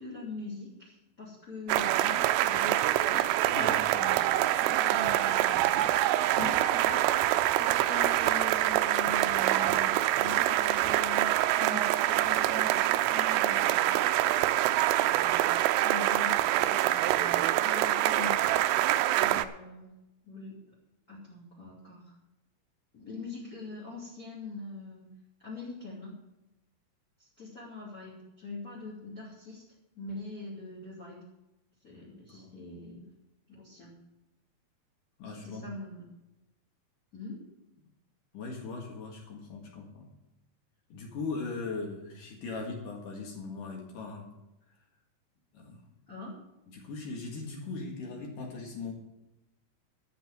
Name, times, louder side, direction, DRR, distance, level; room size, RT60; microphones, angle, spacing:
voice 1, 0.0-2.8 3.1-7.1 7.5-13.9 14.5-18.4 19.1-19.9 20.2-20.8 21.1-22.2 22.9-25.1 25.4-26.1 27.2-29.6 29.9-31.2 31.8-33.0 33.5-33.9 35.2-36.0 37.1-37.4 46.1-46.4, left 3 dB, 25° left, -3 dB, 2.5 m, -43 dB
sound 1, 1.7-19.5, right 14 dB, 80° right, 2.5 m, -25 dB
voice 2, 3.5-4.3 18.8-19.1 32.1-32.6 35.2-35.6 38.3-40.1 40.9-44.3 45.5-45.8 46.7-48.9, left 4 dB, 55° left, 0 dB, 2.9 m, -39 dB
12.5 x 6.8 x 7.6 m, 0.96 s
omnidirectional pair, 5.1 m